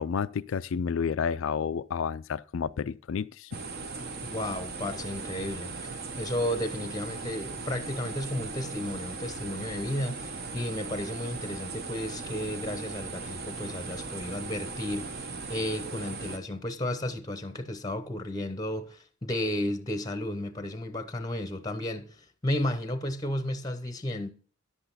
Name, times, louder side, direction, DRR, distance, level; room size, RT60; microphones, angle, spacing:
voice 1, 0.0-3.6, left 6 dB, 65° left, 0.4 m, -30 dB
sound 1, 3.5-16.4, right 4 dB, 45° right, 1.1 m, -38 dB
voice 2, 4.2-24.3, left 1 dB, 15° left, 0.8 m, -33 dB
11.0 x 7.9 x 4.1 m
head